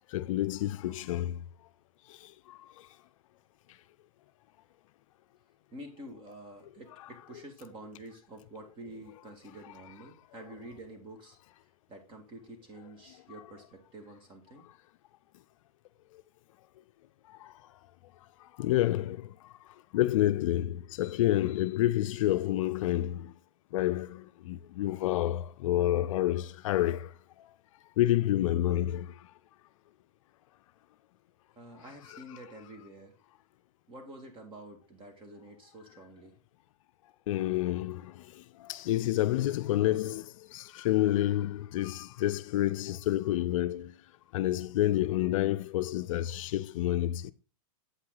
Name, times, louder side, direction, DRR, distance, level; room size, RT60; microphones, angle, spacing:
voice 1, 0.1-1.4 2.2-2.6 17.4-17.5 18.6-19.3 19.9-23.3 23.7-27.1 28.0-29.1 37.3-43.9 44.3-47.3, left 14 dB, 60° left, 0.5 m, -29 dB
voice 2, 5.7-11.4 11.9-14.7 31.6-33.2 33.9-36.4, right 1 dB, 25° right, 2.1 m, -48 dB
7.9 x 5.8 x 3.9 m
hypercardioid pair, 135°, 19 cm